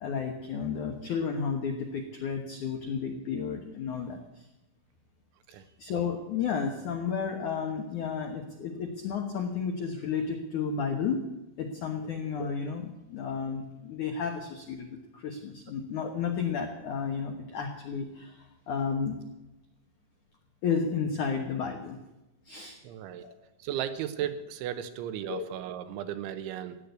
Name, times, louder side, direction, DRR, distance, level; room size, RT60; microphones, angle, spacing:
voice 1, 0.0-4.5 5.8-11.2 11.6-19.2 20.6-22.0 22.5-22.8 23.2-23.3 25.3-25.4, left 6 dB, 75° left, 4 dB, 1.7 m, -32 dB
voice 2, 22.8-23.3 23.6-26.8, right 10 dB, 80° right, 10 dB, 3.2 m, -35 dB
16.0 x 9.8 x 8.2 m, 0.97 s
omnidirectional pair, 5.5 m